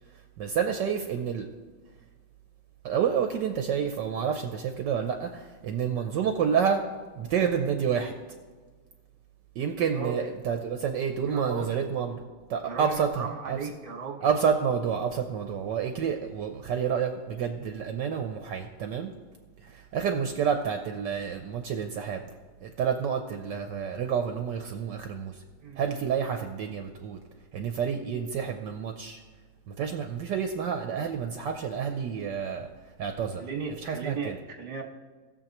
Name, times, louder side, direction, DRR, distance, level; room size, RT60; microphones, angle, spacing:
voice 1, 0.4-1.5 2.8-6.8 7.2-8.1 9.6-12.2 12.5-13.6 14.2-19.1 19.6-22.2 22.6-25.4 25.8-27.2 27.5-29.2 29.7-32.7 33.0-33.4 33.8-34.4, right 7 dB, 70° right, 5 dB, 1.2 m, -29 dB
voice 2, 9.9-10.3 11.3-11.8 12.6-14.3 25.6-25.8 33.4-34.8, right 5 dB, 30° right, 2 dB, 1.3 m, -36 dB
19.0 x 7.0 x 3.0 m, 1.4 s
omnidirectional pair, 2.2 m